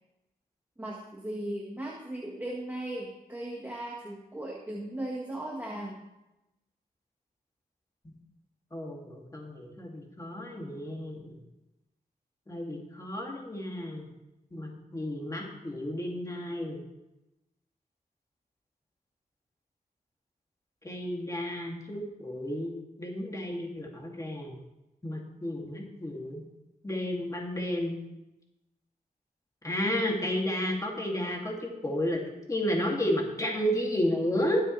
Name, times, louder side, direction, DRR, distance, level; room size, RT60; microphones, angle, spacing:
voice 1, 0.8-6.0, right 1 dB, 10° right, -3 dB, 1.7 m, -37 dB
voice 2, 8.7-11.3 12.5-14.1 14.5-16.8 20.8-22.7 23.0-24.5 25.0-26.4 26.8-28.0 29.6-32.2 32.5-34.6, left 1 dB, 20° left, -1 dB, 2.5 m, -32 dB
23.0 x 7.6 x 3.3 m, 0.94 s
wide cardioid pair, 120°, 16 cm